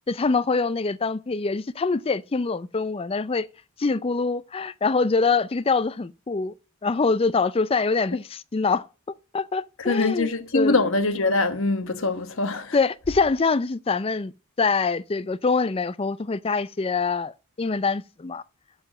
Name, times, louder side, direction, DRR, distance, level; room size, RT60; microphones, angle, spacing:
voice 1, 0.1-3.5 3.8-6.5 6.8-8.9 9.3-10.3 10.5-10.8 12.7-14.3 14.6-17.3 17.6-18.4, left 4 dB, 25° left, 0.4 m, -24 dB
voice 2, 9.8-12.8, left 3 dB, 60° left, 1.2 m, -23 dB
7.5 x 7.1 x 7.5 m
head